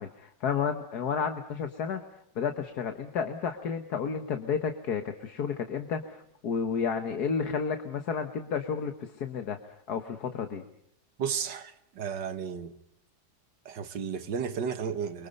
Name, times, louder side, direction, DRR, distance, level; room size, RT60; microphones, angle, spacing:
voice 1, 0.0-2.0 2.4-9.6 9.9-10.6, left 6 dB, 65° left, 1.8 m, -31 dB
voice 2, 11.2-12.8 13.7-15.3, right 7 dB, 90° right, 2.0 m, -33 dB
30.0 x 24.0 x 5.4 m
omnidirectional pair, 1.8 m